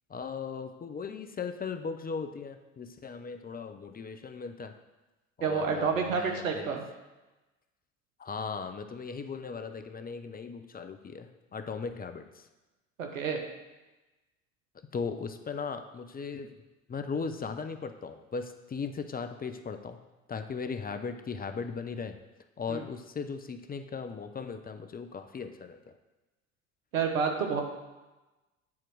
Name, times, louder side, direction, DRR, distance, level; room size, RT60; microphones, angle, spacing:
voice 1, 0.1-4.7 5.4-6.8 8.2-12.5 14.9-16.5 16.9-20.0 20.3-22.2 22.6-25.9, left 5 dB, 20° left, 8 dB, 0.7 m, -38 dB
voice 2, 5.4-6.8 13.0-13.4 22.7-22.8 26.9-27.6, right 5 dB, 80° right, 4 dB, 1.3 m, -29 dB
9.3 x 4.5 x 6.2 m, 1.1 s
hypercardioid pair, 70°, 40 cm